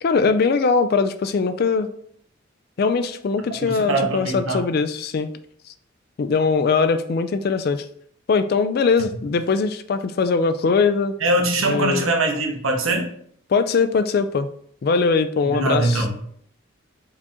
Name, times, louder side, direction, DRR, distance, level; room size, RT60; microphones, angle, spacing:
voice 1, 0.0-1.9 2.8-5.3 6.2-7.9 8.3-11.2 11.7-12.1 13.5-14.5 14.8-16.2, left 4 dB, 50° left, 11 dB, 0.3 m, -21 dB
voice 2, 3.6-4.6 11.2-13.1 15.4-16.2, right 2 dB, 90° right, 2 dB, 1.0 m, -22 dB
4.8 x 2.8 x 3.6 m, 0.63 s
head